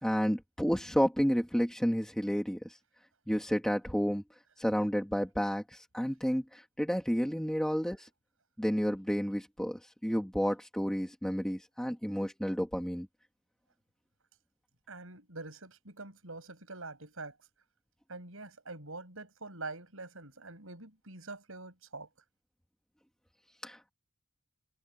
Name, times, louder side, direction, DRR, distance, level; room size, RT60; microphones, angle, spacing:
voice 1, 0.0-2.8 3.3-4.2 4.6-8.1 8.6-13.1 23.6-23.9, equal, 5° left, 2.0 m, -31 dB
voice 2, 14.9-17.4 18.1-22.1, right 3 dB, 65° right, 7.4 m, -45 dB
head